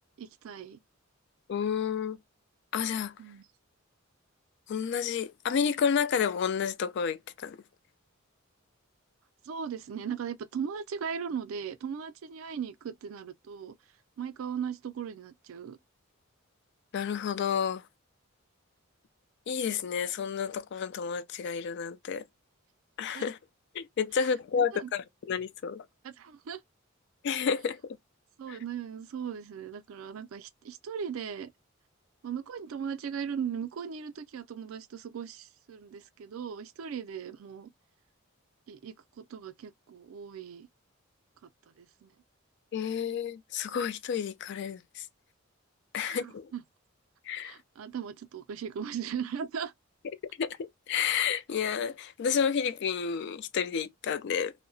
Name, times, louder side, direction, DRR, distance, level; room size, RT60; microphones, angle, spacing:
voice 1, 0.2-0.8 3.2-3.5 9.4-13.8 14.2-15.8 23.1-23.3 24.6-24.9 26.0-26.6 28.4-31.5 32.2-37.7 38.7-40.7 41.8-42.1 46.0-46.6 47.4-49.7, right 7 dB, 75° right, 0.4 m, -38 dB
voice 2, 1.5-2.2 2.7-3.1 4.7-7.6 16.9-17.8 19.5-22.2 23.0-23.4 23.7-25.8 27.2-28.0 28.5-28.6 42.7-45.1 45.9-46.5 47.3-47.5 50.4-54.5, left 7 dB, 55° left, 0.3 m, -30 dB
2.7 x 2.1 x 2.5 m
head